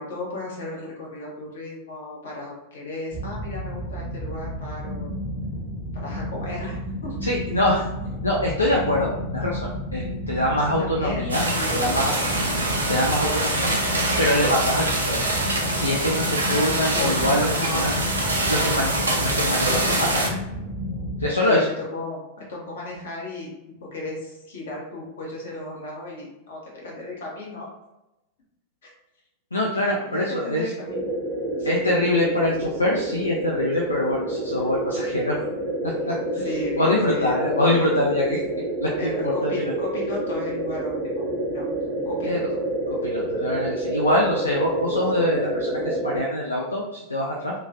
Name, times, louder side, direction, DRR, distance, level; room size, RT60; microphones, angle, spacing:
voice 1, 0.0-5.1 5.9-7.2 10.8-11.3 11.6-12.7 16.9-17.2 17.5-17.9 21.4-23.5 23.8-27.7 28.8-28.9 30.0-31.1 31.6-31.9 36.3-37.4 39.0-41.2 41.5-41.7 42.0-42.4, left 2 dB, 65° left, -3 dB, 1.0 m, -34 dB
sound 1, 3.1-21.3, left 1 dB, 20° left, 0.7 m, -32 dB
voice 2, 7.2-7.9 8.2-11.4 11.7-12.1 12.9-13.7 14.2-15.2 15.7-17.5 17.7-17.9 18.5-20.4 21.2-21.7 29.5-30.6 31.6-35.4 35.8-36.5 36.8-38.4 38.8-39.7 42.2-42.5 43.0-47.5, left 1 dB, 80° left, -2 dB, 0.4 m, -24 dB
sound 2, 11.3-20.3, right 2 dB, 75° right, 0.5 m, -24 dB
sound 3, 30.9-46.2, right 1 dB, 35° right, 0.7 m, -28 dB
2.9 x 2.3 x 2.6 m, 0.94 s
figure-of-eight pair, 90°, 0 cm